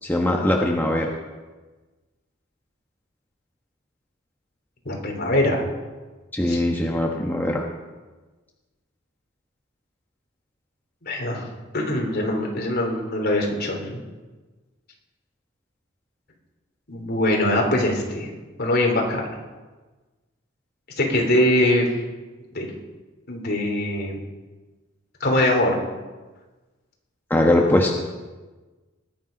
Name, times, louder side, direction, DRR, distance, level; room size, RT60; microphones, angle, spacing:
voice 1, 0.0-1.1 6.3-7.6 27.3-27.9, left 1 dB, 10° left, 0 dB, 1.2 m, -21 dB
voice 2, 4.9-5.7 6.5-6.6 11.0-11.5 11.7-14.0 16.9-18.3 18.6-19.2 21.0-21.8 22.5-22.7 23.3-24.1 25.2-25.8, left 1 dB, 50° left, 1 dB, 3.5 m, -22 dB
19.5 x 10.5 x 5.3 m, 1.3 s
head